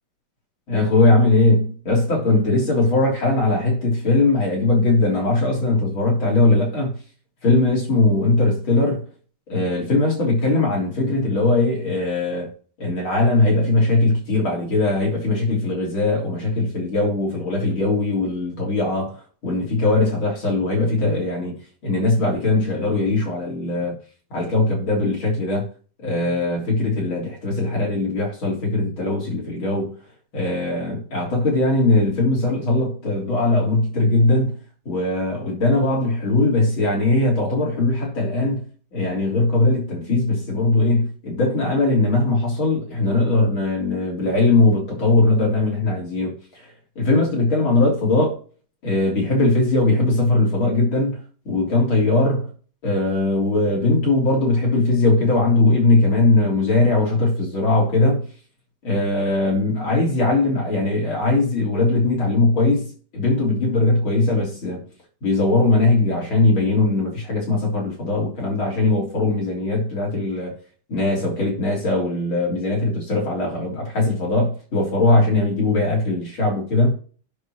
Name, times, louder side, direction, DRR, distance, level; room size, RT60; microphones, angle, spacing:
voice 1, 0.7-7.0 7.4-9.0 9.5-12.5 12.8-21.6 21.8-24.0 24.3-25.7 26.0-29.9 30.3-34.6 34.9-38.6 38.9-46.7 47.0-48.4 48.8-52.5 52.8-58.3 58.8-64.8 65.2-70.6 70.9-76.9, left 2 dB, 75° left, 4.4 m, -20 dB
17.0 x 6.5 x 3.2 m
omnidirectional pair, 2.3 m